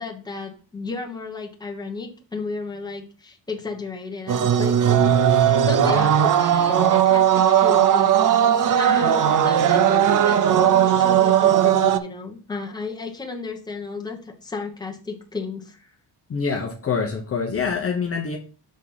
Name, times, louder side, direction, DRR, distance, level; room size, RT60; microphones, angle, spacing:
voice 1, 0.0-15.9, left 4 dB, 10° left, 1 dB, 1.2 m, -34 dB
sound 1, 4.3-12.0, right 9 dB, 50° right, 0.6 m, -17 dB
voice 2, 5.8-6.1 8.6-8.7 16.3-18.4, left 5 dB, 30° left, 1 dB, 0.9 m, -26 dB
6.4 x 3.7 x 5.5 m, 0.39 s
cardioid pair, 155°, 43 cm